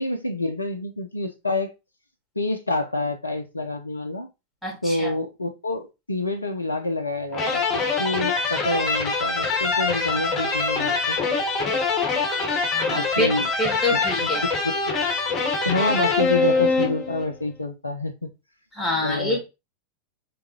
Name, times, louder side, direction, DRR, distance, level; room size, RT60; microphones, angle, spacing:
voice 1, 0.0-1.7 2.4-4.3 4.8-11.2 12.9-13.5 13.9-14.3 15.7-18.3 19.0-19.4, left 2 dB, 80° left, 0.5 m, -27 dB
voice 2, 4.6-5.1 12.7-14.4 18.7-19.4, left 1 dB, ahead, 2.0 m, -26 dB
sound 1, 7.3-17.3, left 4 dB, 30° left, 1.0 m, -24 dB
3.8 x 3.7 x 2.8 m
figure-of-eight pair, 90°, 0 cm